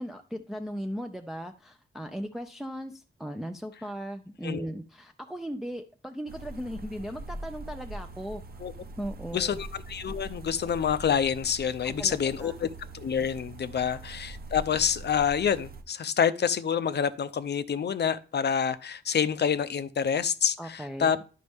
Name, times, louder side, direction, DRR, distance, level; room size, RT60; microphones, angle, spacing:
voice 1, 0.0-8.4 9.0-9.6 12.0-12.5 13.8-14.0 20.6-21.1, equal, ahead, 0.4 m, -37 dB
sound 1, 6.3-15.8, right 2 dB, 45° right, 0.8 m, -43 dB
voice 2, 9.3-12.7 12.9-21.2, left 7 dB, 55° left, 0.5 m, -27 dB
11.0 x 5.3 x 3.5 m
wide cardioid pair, 145°, 21 cm